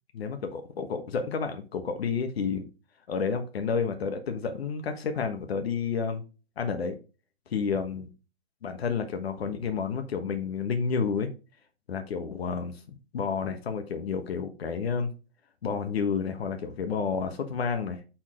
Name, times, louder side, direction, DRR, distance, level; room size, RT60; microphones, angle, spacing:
voice 1, 0.1-2.7 3.1-6.2 6.6-6.9 7.5-8.1 8.6-11.3 11.9-15.1 15.6-18.0, left 5 dB, 70° left, 7 dB, 1.2 m, -30 dB
5.7 x 4.6 x 4.3 m, 0.33 s
hypercardioid pair, 150°, 32 cm